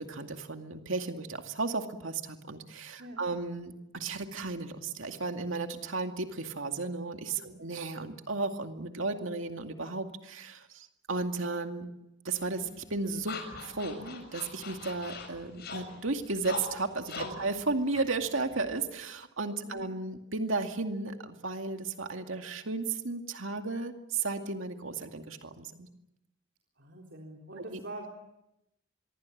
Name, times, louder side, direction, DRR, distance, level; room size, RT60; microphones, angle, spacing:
voice 1, 0.0-11.9 12.2-25.9 27.7-27.8, right 3 dB, 75° right, 5 dB, 2.3 m, -34 dB
sound 1, 12.4-18.9, left 4 dB, 50° left, 6.8 m, -43 dB
voice 2, 26.8-28.1, right 1 dB, 60° right, 0 dB, 3.9 m, -45 dB
26.0 x 23.0 x 8.6 m, 0.87 s
head